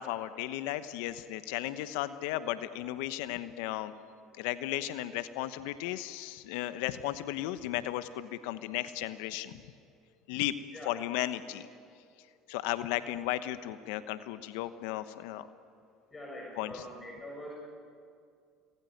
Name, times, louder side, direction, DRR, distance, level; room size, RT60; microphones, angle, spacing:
voice 1, 0.0-3.9 4.4-9.6 10.3-10.5 10.8-11.7 12.5-15.5 16.6-16.8, left 14 dB, 75° left, 12 dB, 1.0 m, -35 dB
voice 2, 16.1-17.5, left 1 dB, 20° left, -2 dB, 6.9 m, -43 dB
27.5 x 20.5 x 9.4 m, 2.3 s
hypercardioid pair, 75°, 0 cm